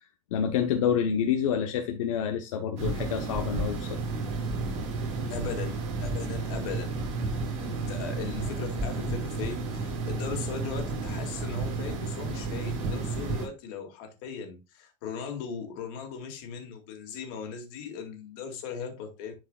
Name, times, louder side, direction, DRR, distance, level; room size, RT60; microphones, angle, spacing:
voice 1, 0.3-4.0, left 8 dB, 70° left, 1.0 m, -28 dB
sound 1, 2.8-13.5, right 3 dB, 35° right, 3.1 m, -32 dB
voice 2, 5.3-6.9 7.6-19.3, left 6 dB, 45° left, 2.2 m, -38 dB
11.0 x 4.7 x 2.4 m
supercardioid pair, 175°, 17 cm